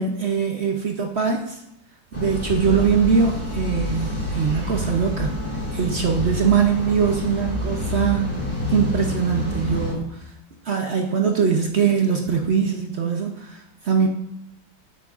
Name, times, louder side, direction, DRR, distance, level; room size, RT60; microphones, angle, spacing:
voice 1, 0.0-1.6 2.1-8.3 8.7-10.3 10.6-14.1, right 6 dB, 70° right, 2 dB, 0.6 m, -22 dB
sound 1, 2.1-9.9, left 1 dB, 10° left, 1.9 m, -28 dB
9.4 x 8.4 x 2.4 m, 0.83 s
omnidirectional pair, 2.0 m